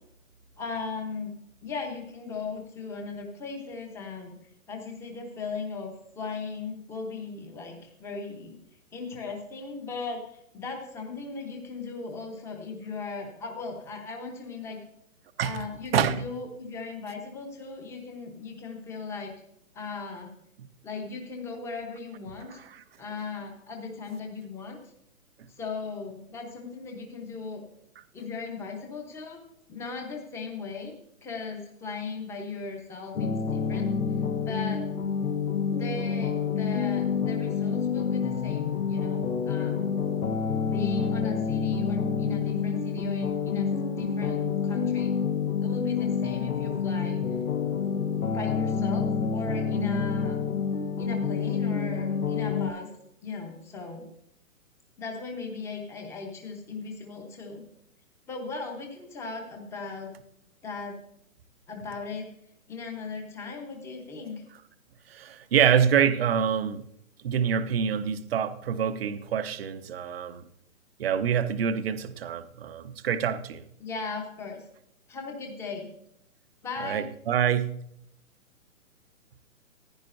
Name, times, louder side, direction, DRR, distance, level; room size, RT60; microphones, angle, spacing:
voice 1, 0.6-1.3 1.6-4.4 4.7-8.6 8.9-14.8 15.4-19.3 19.7-20.3 20.8-22.6 23.0-24.8 25.6-27.6 28.1-29.4 29.7-31.0 31.2-33.9 34.5-34.9 35.7-40.0 40.6-45.1 45.6-47.2 48.3-50.4 51.0-52.9 53.2-54.1 55.0-57.6 58.3-60.1 60.6-61.0 61.7-62.3 62.7-64.4 73.8-74.6 75.1-75.9 76.6-77.0, left 4 dB, 5° left, 0.9 m, -37 dB
voice 2, 15.9-16.2 22.5-22.7 65.1-66.8 67.2-70.4 71.0-73.6 76.8-77.8, right 8 dB, 45° right, 0.8 m, -26 dB
sound 1, 33.1-52.7, left 6 dB, 80° left, 1.4 m, -28 dB
15.5 x 10.0 x 2.6 m
hypercardioid pair, 150°, 43 cm